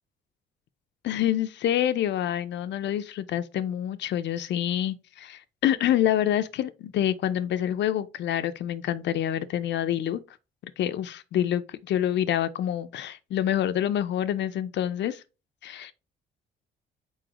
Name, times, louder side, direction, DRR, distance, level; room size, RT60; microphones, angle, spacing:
voice 1, 1.0-10.2 10.8-15.2 15.6-15.9, left 11 dB, 65° left, 0.4 m, -27 dB
4.2 x 3.9 x 2.9 m
cardioid pair, 90°, 20 cm